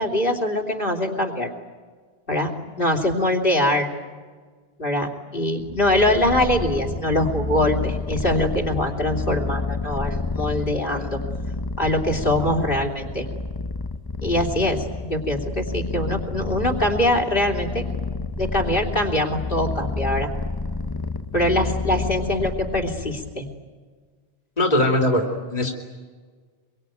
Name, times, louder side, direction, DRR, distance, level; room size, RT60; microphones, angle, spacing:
voice 1, 0.0-1.5 2.3-2.5 2.8-3.9 4.8-11.2 11.8-13.3 14.2-17.8 18.4-20.3 21.3-23.5, left 1 dB, 60° left, 5 dB, 3.2 m, -23 dB
Purr, 5.6-23.4, left 3 dB, 25° left, 0.9 m, -29 dB
voice 2, 24.6-25.7, left 1 dB, 40° left, 1 dB, 2.8 m, -20 dB
25.0 x 23.5 x 9.2 m, 1.5 s
omnidirectional pair, 1.0 m